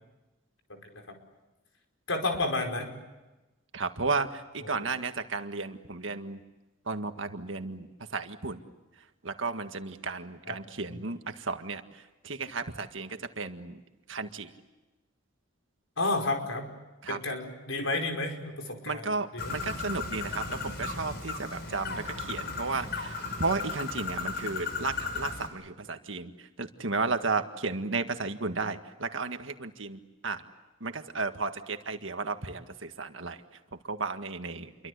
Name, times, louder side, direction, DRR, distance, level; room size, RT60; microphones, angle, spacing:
voice 1, 0.7-1.0 2.1-3.0 4.6-4.9 10.4-10.6 10.9-11.0 16.0-16.7 17.1-19.6, left 2 dB, 85° left, 3 dB, 5.0 m, -32 dB
voice 2, 3.7-6.4 6.9-8.6 9.2-11.8 12.2-13.8 14.1-14.5 17.0-17.2 18.8-26.3 26.6-30.4 30.8-33.4 33.8-34.7, right 4 dB, 70° right, 7 dB, 1.8 m, -33 dB
Bird, 19.4-25.5, left 4 dB, 55° left, 5.3 m, -36 dB
29.0 x 23.5 x 8.3 m, 1.1 s
head